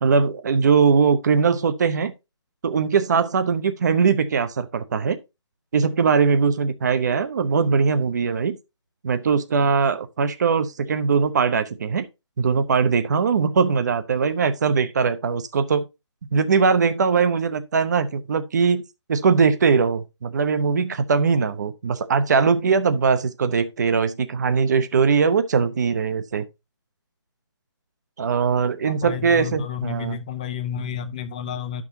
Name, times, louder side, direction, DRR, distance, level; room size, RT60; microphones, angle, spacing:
voice 1, 0.0-2.1 2.6-5.2 5.7-8.6 9.0-12.1 12.4-15.9 16.3-18.8 19.1-26.5 28.2-30.2, right 5 dB, 40° right, 0.7 m, -21 dB
voice 2, 28.8-31.8, left 8 dB, 15° left, 0.4 m, -31 dB
11.0 x 6.1 x 2.8 m
figure-of-eight pair, 155°, 15 cm